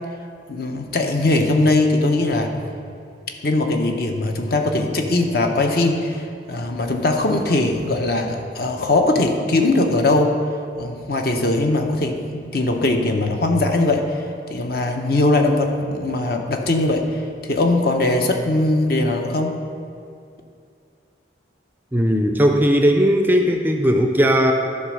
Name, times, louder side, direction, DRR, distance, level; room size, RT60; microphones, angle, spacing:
voice 1, 0.5-2.5 3.4-10.3 10.8-19.6, left 2 dB, 55° left, 3 dB, 0.8 m, -20 dB
voice 2, 21.9-24.5, equal, 10° right, 4 dB, 0.4 m, -17 dB
11.0 x 4.2 x 6.3 m, 2.4 s
head